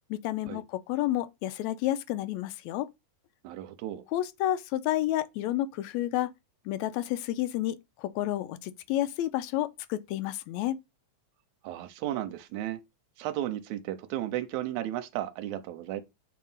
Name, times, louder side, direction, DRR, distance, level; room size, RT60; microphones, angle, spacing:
voice 1, 0.1-2.9 4.1-6.3 6.7-10.8, left 14 dB, 80° left, 1.8 m, -30 dB
voice 2, 3.4-4.0 11.6-12.8 13.2-16.0, right 13 dB, 90° right, 2.0 m, -34 dB
7.4 x 2.8 x 5.4 m
omnidirectional pair, 3.4 m